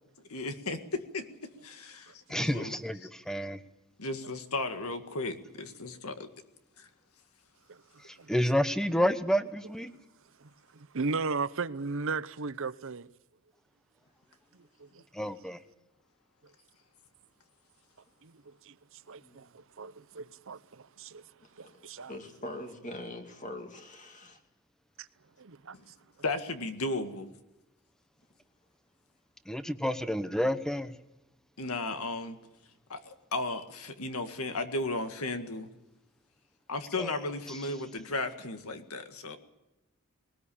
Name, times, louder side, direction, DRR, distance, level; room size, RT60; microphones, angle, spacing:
voice 1, 0.3-2.7 3.0-3.1 4.0-6.3 6.8-6.9 25.7-25.8 26.2-27.3 31.6-32.4 32.9-35.7 36.7-39.4, left 2 dB, 70° left, 1.9 m, -35 dB
voice 2, 2.3-3.6 8.1-9.9 15.1-15.6 29.5-30.9 37.0-37.2, equal, 5° left, 1.0 m, -29 dB
voice 3, 10.4-13.1 14.8-14.9 18.2-18.7 19.1-21.2 21.6-22.2 25.4-25.8, right 4 dB, 60° right, 0.8 m, -36 dB
voice 4, 21.6-24.4, left 1 dB, 35° left, 2.3 m, -43 dB
20.5 x 19.5 x 8.7 m
head